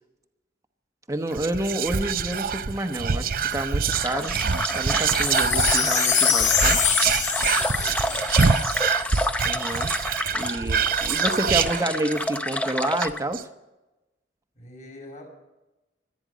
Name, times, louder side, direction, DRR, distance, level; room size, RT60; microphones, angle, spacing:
voice 1, 1.1-4.3 4.7-6.8 9.4-9.9 10.3-13.5, right 1 dB, 20° right, 7 dB, 1.1 m, -29 dB
Whispering, 1.3-12.4 12.7-12.8 13.0-13.4, right 6 dB, 50° right, 0.6 m, -25 dB
sound 1, 3.9-13.2, left 1 dB, 5° left, 0.6 m, -29 dB
Wind chime, 5.0-9.4 9.9-10.0, left 9 dB, 90° left, 1.7 m, -25 dB
voice 2, 7.3-8.2 10.2-11.7 14.6-15.3, left 1 dB, 45° left, 1 dB, 5.3 m, -46 dB
25.5 x 9.9 x 5.2 m, 1.0 s
head